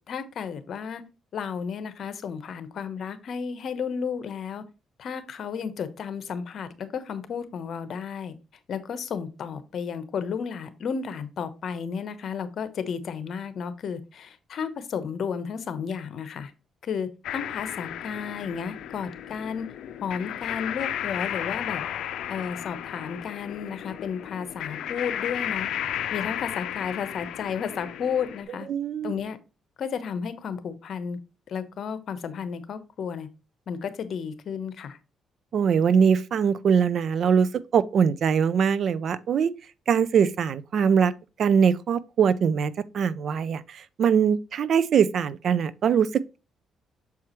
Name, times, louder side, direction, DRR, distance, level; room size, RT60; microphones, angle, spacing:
voice 1, 0.1-1.0 1.3-4.6 5.0-8.3 8.7-16.5 16.8-19.7 20.0-21.8 22.3-25.7 26.1-28.7 29.0-29.4 29.8-31.2 31.5-33.3 33.7-35.0, left 6 dB, 60° left, 1.0 m, -33 dB
sound 1, 17.2-28.4, left 10 dB, 80° left, 0.5 m, -34 dB
voice 2, 28.7-29.1 35.5-39.5 39.9-41.1 41.4-46.4, right 7 dB, 60° right, 0.5 m, -22 dB
7.1 x 4.7 x 3.0 m
cardioid pair, 90°, 0 cm